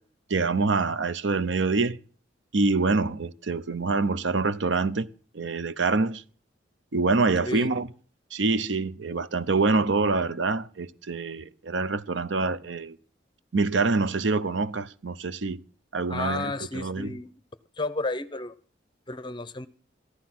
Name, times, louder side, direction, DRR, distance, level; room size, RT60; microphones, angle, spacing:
voice 1, 0.3-2.0 2.5-5.1 5.3-6.2 6.9-7.9 8.3-13.0 13.5-15.6 15.9-17.2, right 3 dB, 70° right, 0.7 m, -25 dB
voice 2, 16.1-17.3 17.8-18.5 19.1-19.7, left 2 dB, 25° left, 0.7 m, -32 dB
14.5 x 11.5 x 5.9 m
head